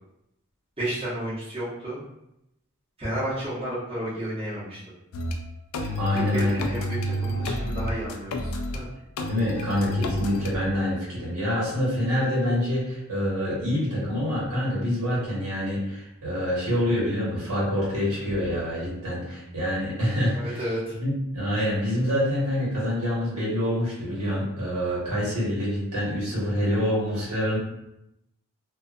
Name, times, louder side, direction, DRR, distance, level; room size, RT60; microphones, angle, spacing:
voice 1, 0.8-2.0 3.0-4.8 5.8-8.9 20.4-21.0, right 1 dB, 25° right, -11 dB, 1.0 m, -32 dB
sound 1, 5.1-5.4 5.7-8.8 9.2-10.5, left 1 dB, 65° left, 0.3 m, -29 dB
voice 2, 6.0-6.6 9.3-20.6 21.0-27.6, equal, 75° right, -7 dB, 1.3 m, -26 dB
2.6 x 2.4 x 2.5 m, 0.84 s
head